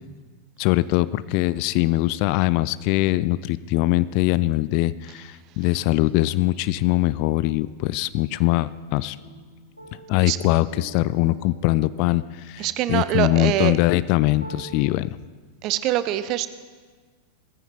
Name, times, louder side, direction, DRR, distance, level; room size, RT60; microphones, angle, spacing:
voice 1, 0.6-9.2 10.1-15.1, left 18 dB, 45° left, 18 dB, 0.4 m, -22 dB
sound 1, 9.2-14.8, right 3 dB, 85° right, 2.6 m, -46 dB
voice 2, 12.6-13.7 15.6-16.5, right 14 dB, 40° right, 13 dB, 0.8 m, -24 dB
17.5 x 14.5 x 4.4 m, 1.5 s
figure-of-eight pair, 90°, 0 cm